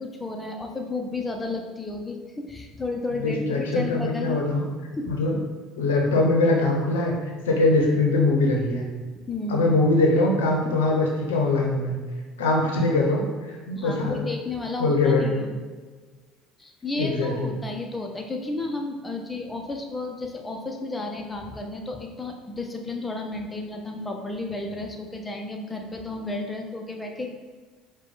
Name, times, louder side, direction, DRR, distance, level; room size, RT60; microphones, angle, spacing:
voice 1, 0.0-4.6 4.9-5.1 9.3-9.6 13.8-15.5 16.6-27.3, left 2 dB, 15° left, 2 dB, 0.7 m, -32 dB
voice 2, 3.2-4.6 5.0-5.4 5.8-7.1 7.4-8.9 9.5-12.0 12.4-14.2 14.8-15.5 17.0-17.5, left 2 dB, 85° left, 0 dB, 0.7 m, -22 dB
4.6 x 2.3 x 3.9 m, 1.4 s
hypercardioid pair, 70°, 0 cm